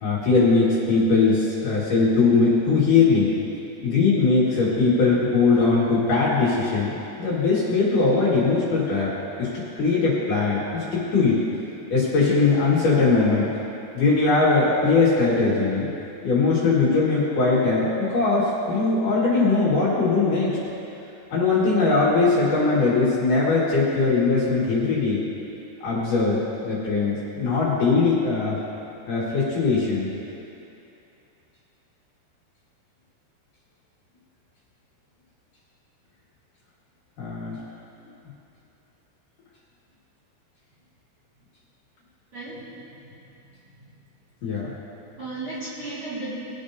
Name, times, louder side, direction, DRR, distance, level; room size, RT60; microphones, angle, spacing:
voice 1, 0.0-3.3 3.8-11.4 11.9-13.5 13.9-15.9 16.2-20.6 21.3-25.2 25.8-28.6 29.1-30.1 37.2-37.6 44.4-44.7, left 4 dB, 55° left, -7 dB, 3.0 m, -20 dB
voice 2, 42.3-42.7 43.0-43.1 45.1-46.4, right 2 dB, 40° right, -10 dB, 2.4 m, -34 dB
21.5 x 8.5 x 2.7 m, 2.8 s
omnidirectional pair, 5.0 m